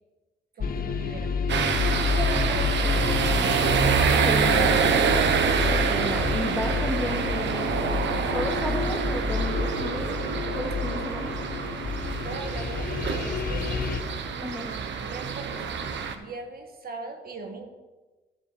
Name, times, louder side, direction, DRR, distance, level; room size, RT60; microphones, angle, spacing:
sound 1, 0.6-14.0, left 5 dB, 45° left, 1.0 m, -29 dB
voice 1, 0.6-3.5 3.8-4.1 12.2-13.8 14.5-15.6 16.2-17.7, right 3 dB, 50° right, 4 dB, 1.8 m, -39 dB
sound 2, 1.5-16.2, right 6 dB, 65° right, 1.1 m, -26 dB
voice 2, 4.2-10.2 10.5-11.3 14.4-14.7, left 1 dB, 5° left, 4 dB, 1.3 m, -34 dB
13.0 x 5.0 x 7.0 m, 1.2 s
cardioid pair, 90°, 20 cm